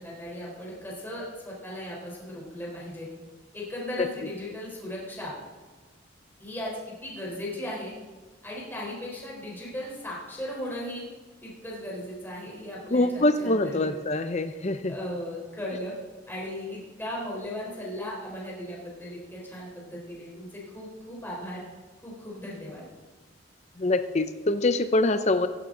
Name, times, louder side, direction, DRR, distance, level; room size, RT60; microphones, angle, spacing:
voice 1, 0.0-3.1 3.5-5.3 6.4-7.9 8.4-11.0 11.4-13.9 14.9-15.9 16.3-21.6 22.0-22.8, left 1 dB, 10° left, -5 dB, 3.9 m, -37 dB
voice 2, 12.9-14.9 23.8-25.5, left 2 dB, 35° left, 9 dB, 0.6 m, -24 dB
16.5 x 15.0 x 3.8 m, 1.3 s
head